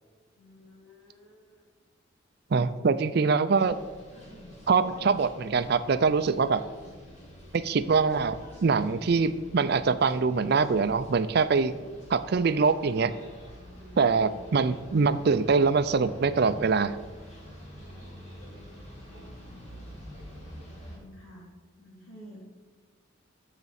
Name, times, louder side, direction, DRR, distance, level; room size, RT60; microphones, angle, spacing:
voice 1, 0.4-1.6 2.7-2.8 4.1-4.4 19.0-19.2 20.8-21.4 21.8-22.4, equal, 80° left, -6 dB, 2.7 m, -51 dB
voice 2, 2.5-3.7 4.7-6.6 7.5-8.4 8.6-11.7 12.1-13.2 14.0-16.9, right 4 dB, 50° right, 13 dB, 0.4 m, -24 dB
sound 1, 3.5-21.0, equal, 35° left, 2.6 m, -46 dB
13.5 x 5.9 x 4.2 m, 1.4 s
head